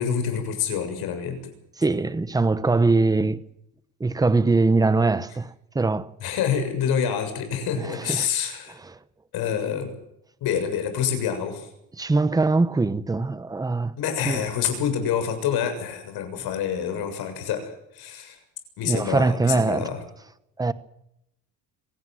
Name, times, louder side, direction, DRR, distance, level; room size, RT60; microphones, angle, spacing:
voice 1, 0.0-1.4 6.2-8.8 9.3-9.9 10.4-11.7 14.0-18.4 18.8-20.0, left 8 dB, 75° left, 7.2 m, -27 dB
voice 2, 1.8-3.4 4.0-6.1 7.8-8.3 8.8-9.0 12.0-13.9 14.2-14.4 18.8-19.8 20.6-20.7, right 3 dB, 10° right, 1.0 m, -22 dB
25.5 x 17.5 x 7.7 m
cardioid pair, 180°, 38 cm